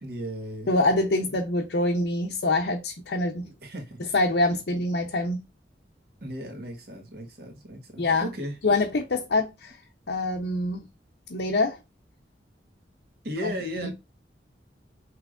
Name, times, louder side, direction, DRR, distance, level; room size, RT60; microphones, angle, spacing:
voice 1, 0.0-1.2 3.4-4.0 6.2-8.6 13.2-13.9, equal, 60° right, 1.4 m, -36 dB
voice 2, 0.7-3.5 4.1-5.4 8.0-8.3 8.6-9.8 10.1-10.8 11.3-11.8 13.4-13.5 13.8-13.9, left 2 dB, 65° left, 0.7 m, -25 dB
5.8 x 3.2 x 2.4 m
head